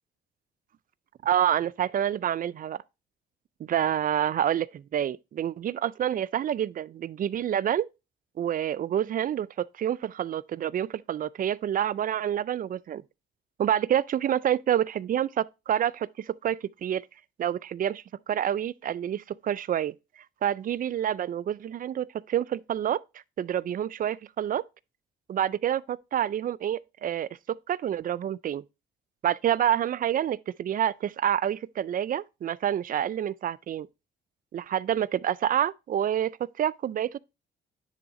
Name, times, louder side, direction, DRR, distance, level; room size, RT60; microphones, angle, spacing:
voice 1, 1.2-2.8 3.6-7.9 8.4-13.0 13.6-17.0 17.4-19.9 20.4-23.0 23.4-24.6 25.3-28.6 29.2-33.9 34.5-36.3 36.6-37.2, right 10 dB, 45° right, 0.4 m, -28 dB
10.0 x 3.6 x 4.1 m
cardioid pair, 90°, 20 cm